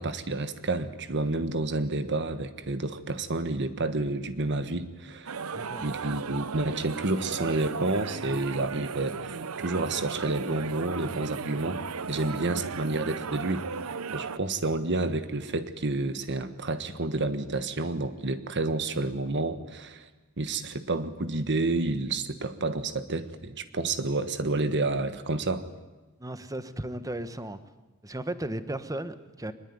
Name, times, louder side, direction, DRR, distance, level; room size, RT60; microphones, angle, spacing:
voice 1, 0.0-5.3 5.8-11.8 12.1-13.6 14.1-20.1 20.4-25.7, right 2 dB, 55° right, 11 dB, 1.4 m, -29 dB
sound 1, 5.3-14.4, right 5 dB, 70° right, 0.8 m, -36 dB
voice 2, 5.5-5.9 26.2-27.6 28.0-29.5, right 1 dB, 15° right, 12 dB, 1.3 m, -35 dB
23.5 x 21.0 x 9.6 m, 1.2 s
head